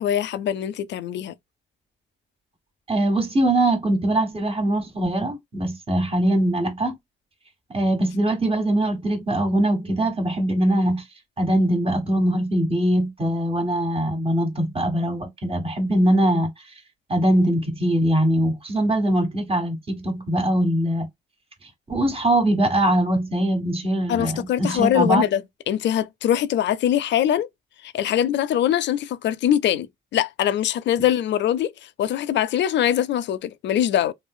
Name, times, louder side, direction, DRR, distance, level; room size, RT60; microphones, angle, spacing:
voice 1, 0.0-1.3 24.1-25.4 25.7-27.5 27.8-34.1, left 10 dB, 65° left, 0.5 m, -22 dB
voice 2, 2.9-7.0 7.7-11.0 11.4-16.5 17.1-21.1 21.9-25.2, right 1 dB, 25° right, 1.3 m, -22 dB
3.1 x 2.8 x 2.2 m
cardioid pair, 90°, 20 cm